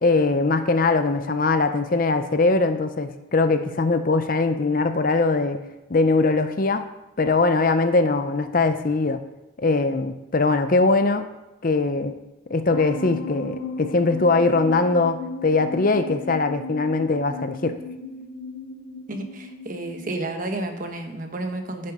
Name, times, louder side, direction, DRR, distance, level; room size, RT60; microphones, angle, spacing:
voice 1, 0.0-5.6 5.9-6.8 7.2-9.2 9.6-11.3 11.6-12.1 12.5-17.8, left 3 dB, 45° left, 9 dB, 0.6 m, -21 dB
sound 1, 12.7-20.1, left 2 dB, 75° left, 1.1 m, -35 dB
voice 2, 19.1-21.9, right 2 dB, 40° right, 5 dB, 1.1 m, -31 dB
10.0 x 7.0 x 4.9 m, 1.0 s
head